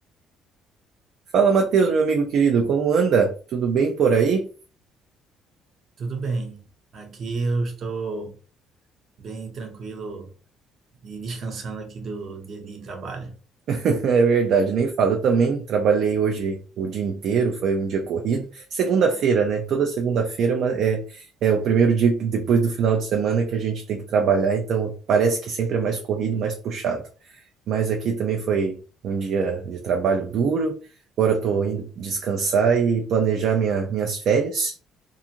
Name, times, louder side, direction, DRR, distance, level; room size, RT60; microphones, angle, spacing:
voice 1, 1.3-4.4 13.7-27.0 27.3-27.4 27.7-28.8 29.0-30.8 31.2-34.8, right 6 dB, 60° right, 0.4 m, -22 dB
voice 2, 6.0-6.6 6.9-8.4 9.2-10.3 11.0-13.3, right 3 dB, 45° right, 0.8 m, -31 dB
2.5 x 2.4 x 2.8 m
cardioid pair, 120°, 0 cm